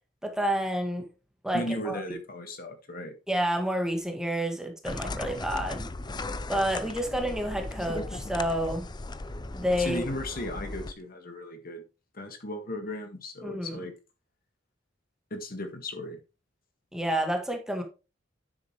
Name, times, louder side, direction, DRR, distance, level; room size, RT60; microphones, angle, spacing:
voice 1, 0.2-1.1 1.4-2.0 3.3-5.9 6.5-8.9 9.5-10.0 13.4-13.7 16.9-17.8, equal, 5° right, 1.8 m, -29 dB
voice 2, 1.5-3.1 9.8-11.8 12.1-13.9 15.3-16.2, left 1 dB, 50° left, 1.8 m, -36 dB
sound 1, 4.8-10.9, left 2 dB, 20° left, 0.6 m, -37 dB
9.9 x 7.8 x 3.2 m
head